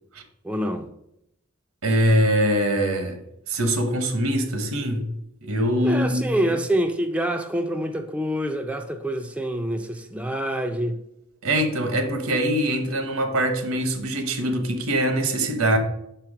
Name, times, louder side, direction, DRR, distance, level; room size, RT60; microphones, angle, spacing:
voice 1, 0.4-0.9 5.8-11.0, right 1 dB, 5° right, 0.4 m, -26 dB
voice 2, 1.8-3.2 3.5-5.1 5.4-6.5 11.4-15.8, right 1 dB, 80° right, 1.0 m, -23 dB
5.7 x 4.5 x 4.8 m
head